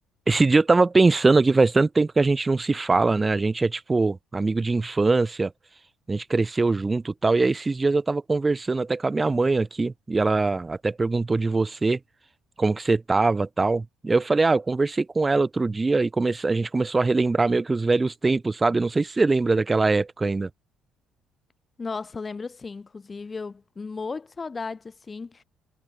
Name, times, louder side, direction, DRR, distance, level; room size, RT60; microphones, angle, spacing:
voice 1, 0.3-5.5 6.1-12.0 12.6-20.5, right 3 dB, 25° right, 0.8 m, -22 dB
voice 2, 21.8-25.4, left 4 dB, 30° left, 1.1 m, -35 dB
hypercardioid pair, 55°, 0 cm